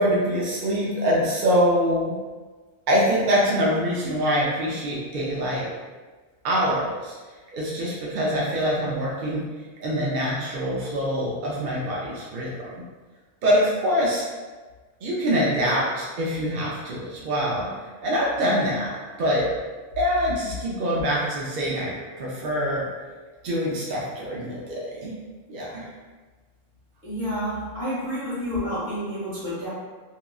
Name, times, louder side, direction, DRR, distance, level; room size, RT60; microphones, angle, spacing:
voice 1, 0.0-2.2 2.9-5.7 6.4-7.2 7.5-9.4 9.8-12.8 13.4-14.2 15.0-17.7 18.0-19.5 20.0-22.8 23.4-25.2 25.5-25.9, equal, 65° right, -5 dB, 0.5 m, -24 dB
voice 2, 27.0-29.7, equal, 40° right, -10 dB, 1.4 m, -29 dB
2.9 x 2.3 x 2.3 m, 1.3 s
omnidirectional pair, 1.3 m